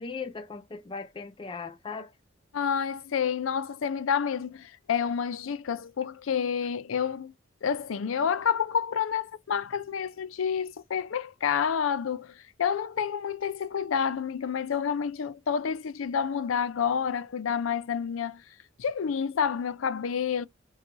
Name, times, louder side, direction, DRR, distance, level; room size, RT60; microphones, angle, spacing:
voice 1, 0.0-2.1, left 4 dB, 25° left, 0.4 m, -38 dB
voice 2, 2.5-7.3 7.6-18.4 18.8-20.5, left 7 dB, 85° left, 0.4 m, -29 dB
3.9 x 2.3 x 2.8 m
head